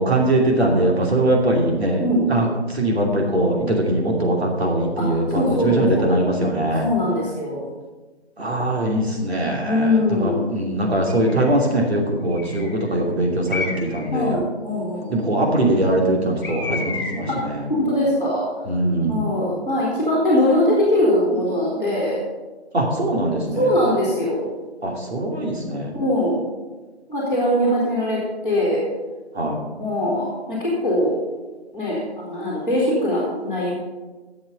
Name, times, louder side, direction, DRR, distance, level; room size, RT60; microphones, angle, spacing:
voice 1, 0.0-6.9 8.4-14.3 15.1-17.7 18.7-19.3 22.7-23.7 24.8-25.9 29.3-29.6, right 1 dB, 70° right, -1 dB, 2.9 m, -21 dB
voice 2, 5.3-6.1 6.8-7.6 9.6-10.4 14.1-15.2 17.3-17.4 17.8-18.4 19.1-22.2 23.6-24.4 25.9-26.4 27.1-28.8 29.8-31.1 31.7-33.7, left 1 dB, 5° right, -15 dB, 2.3 m, -21 dB
Bird, 11.1-11.5 12.3-12.8 13.5-14.1 16.4-17.4, left 3 dB, 15° left, 1.5 m, -31 dB
11.5 x 7.2 x 6.8 m, 1.2 s
hypercardioid pair, 175°, 32 cm